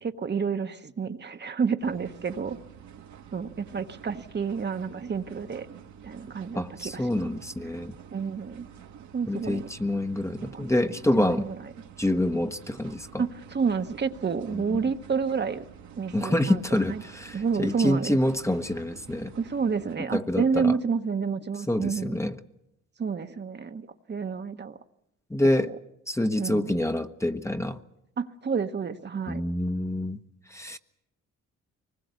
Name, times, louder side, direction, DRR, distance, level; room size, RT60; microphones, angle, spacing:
voice 1, 0.0-2.6 3.3-5.7 6.0-7.2 8.1-8.6 9.1-9.7 10.4-11.7 13.2-15.6 16.0-17.0 17.3-18.2 19.4-22.2 23.0-24.8 25.7-25.8 26.4-26.7 28.2-29.4, right 5 dB, 35° right, 7 dB, 1.2 m, -30 dB
sound 1, 1.8-20.0, right 8 dB, 70° right, 1.7 m, -49 dB
voice 2, 6.5-7.9 9.3-11.5 12.0-13.2 14.5-14.8 16.1-19.3 20.1-20.7 21.7-22.3 25.3-25.7 26.1-27.8 29.3-30.2 30.5-30.8, left 1 dB, 10° left, 7 dB, 1.0 m, -27 dB
24.0 x 20.5 x 8.1 m, 0.83 s
cardioid pair, 90°, 30 cm